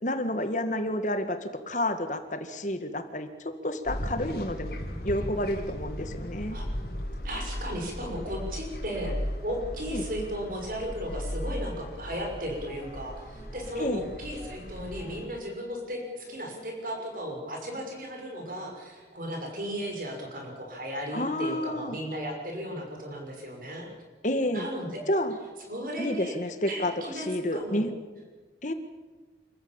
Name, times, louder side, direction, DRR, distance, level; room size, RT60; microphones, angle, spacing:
voice 1, 0.0-4.8 5.0-6.6 9.9-10.1 13.8-14.0 21.1-22.0 24.2-24.7 25.1-25.3 26.0-27.9 28.6-28.7, left 1 dB, 45° left, 8 dB, 1.8 m, -30 dB
sound 1, 3.9-15.2, equal, 60° left, 3.6 m, -37 dB
voice 2, 7.2-23.9 24.5-25.0 25.7-26.3 26.6-27.9, equal, 50° right, 2 dB, 5.8 m, -35 dB
sound 2, 11.7-17.5, right 2 dB, 5° left, 5.7 m, -52 dB
27.0 x 14.5 x 8.8 m, 1.3 s
head